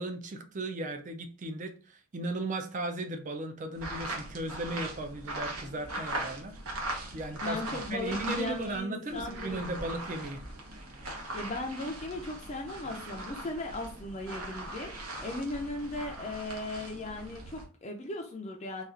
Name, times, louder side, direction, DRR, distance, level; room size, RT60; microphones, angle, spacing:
voice 1, 0.0-10.4, right 2 dB, 35° right, 0.4 m, -36 dB
sound 1, 3.7-8.8 9.1-17.6, right 1 dB, 80° right, 1.0 m, -40 dB
voice 2, 7.4-9.9 11.3-14.9 15.2-18.8, left 2 dB, 30° left, 0.4 m, -37 dB
4.1 x 2.3 x 2.5 m
head